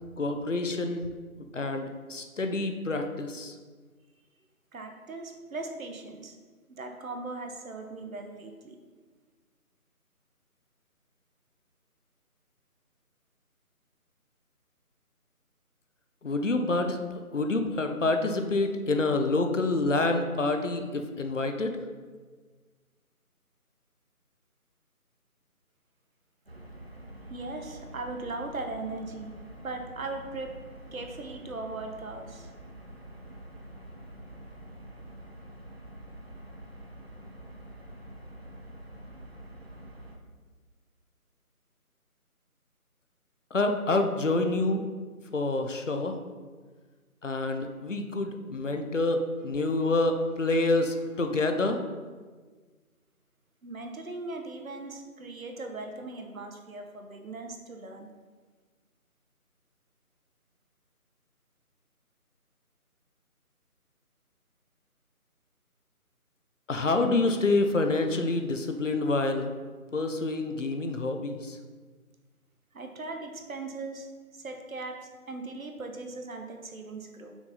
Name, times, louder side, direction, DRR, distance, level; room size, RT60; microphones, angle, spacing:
voice 1, 0.2-1.1 1.5-3.5 16.2-21.8 43.5-44.8 45.3-46.2 47.2-51.8 66.7-69.5 69.9-71.6, left 2 dB, 55° left, 6 dB, 0.6 m, -27 dB
voice 2, 4.7-6.4 6.7-8.8 27.3-29.3 29.6-30.6 30.9-32.5 53.6-58.1 72.7-77.4, right 3 dB, 65° right, 4 dB, 0.9 m, -39 dB
sound 1, 26.5-40.2, right 1 dB, 45° right, 0.5 m, -46 dB
5.9 x 4.0 x 3.9 m, 1.4 s
figure-of-eight pair, 170°, 45 cm